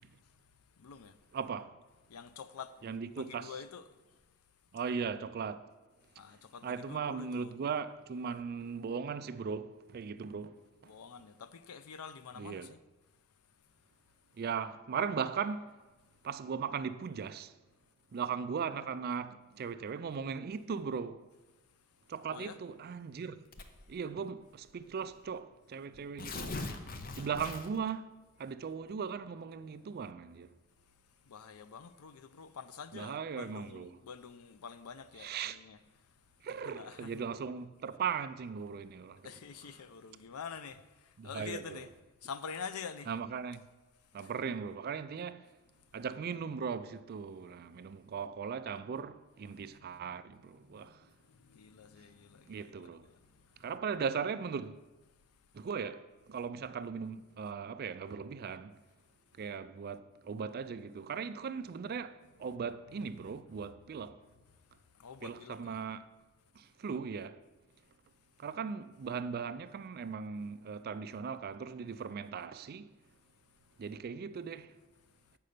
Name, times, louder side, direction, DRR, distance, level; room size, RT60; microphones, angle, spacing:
voice 1, 0.8-1.1 2.1-2.7 3.1-3.9 6.2-7.5 10.8-12.8 22.3-22.6 31.3-35.8 36.5-37.2 39.2-41.9 42.2-43.1 44.2-44.3 49.5-53.7 62.4-62.6 63.2-63.4 63.9-64.0 65.0-65.8, left 6 dB, 85° left, 0.5 m, -47 dB
voice 2, 1.3-1.8 2.8-3.5 4.7-5.6 6.6-10.6 12.4-12.7 14.4-15.7 16.2-17.5 18.1-21.2 22.1-23.4 23.9-26.6 27.2-28.1 28.4-30.5 32.9-33.9 35.2-35.6 36.4-39.3 41.2-41.8 43.1-43.6 44.1-45.5 45.9-51.0 52.5-53.0 53.6-54.8 55.5-58.8 59.4-64.2 65.2-66.0 66.6-67.4 68.4-72.9 73.8-74.7, right 6 dB, 45° right, 0.3 m, -38 dB
Tearing, 23.5-23.9 24.8-24.9 25.2-25.3 25.9-27.9, left 3 dB, 40° left, 0.6 m, -41 dB
7.6 x 5.5 x 6.5 m
head